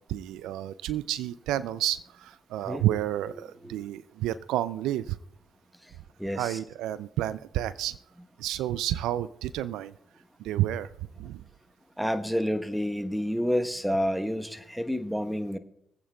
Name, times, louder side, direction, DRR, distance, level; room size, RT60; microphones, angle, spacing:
voice 1, 0.1-5.2 6.4-8.0 8.4-9.9 10.4-10.9 11.2-11.4, right 13 dB, 80° right, 16 dB, 0.3 m, -30 dB
voice 2, 2.6-3.0 3.6-3.8 5.8-5.9 6.2-6.6 12.0-15.6, equal, ahead, 8 dB, 1.0 m, -29 dB
26.0 x 8.6 x 2.3 m, 0.80 s
supercardioid pair, 55°, 0 cm